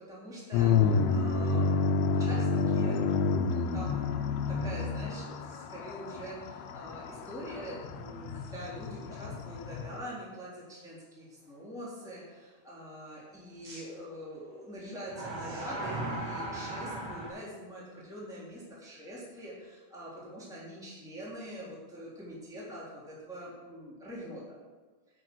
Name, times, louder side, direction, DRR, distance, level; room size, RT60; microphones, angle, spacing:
voice 1, 0.1-24.6, equal, ahead, -7 dB, 2.6 m, -44 dB
sound 1, 0.5-10.0, left 4 dB, 75° left, 2.7 m, -29 dB
sound 2, 8.4-8.5 9.1-9.2 13.6-13.8 15.0-17.3, right 2 dB, 35° right, 3.7 m, -37 dB
9.8 x 7.3 x 6.2 m, 1.4 s
omnidirectional pair, 5.2 m